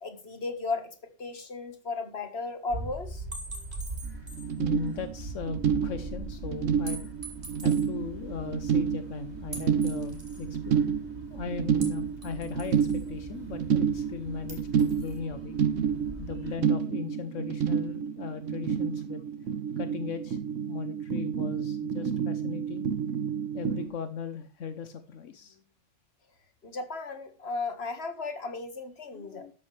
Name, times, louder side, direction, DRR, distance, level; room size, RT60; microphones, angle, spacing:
voice 1, 0.0-3.3 26.6-29.5, left 3 dB, 55° left, 7 dB, 2.0 m, -35 dB
sound 1, 2.7-16.6, right 2 dB, 65° right, 5.2 m, -42 dB
sound 2, 3.3-4.6 4.9-5.0 6.9-7.9 9.5-10.5 11.8-13.1 14.5-15.2, right 2 dB, 45° right, 3.8 m, -44 dB
sound 3, 4.1-4.2 4.3-23.9, right 7 dB, 85° right, 1.4 m, -30 dB
voice 2, 4.6-7.1 7.6-11.0 11.3-15.6 16.2-19.2 19.8-20.4 20.7-22.9 23.5-25.6 29.1-29.5, left 6 dB, 80° left, 10 dB, 1.3 m, -38 dB
13.0 x 11.0 x 3.3 m, 0.35 s
omnidirectional pair, 1.3 m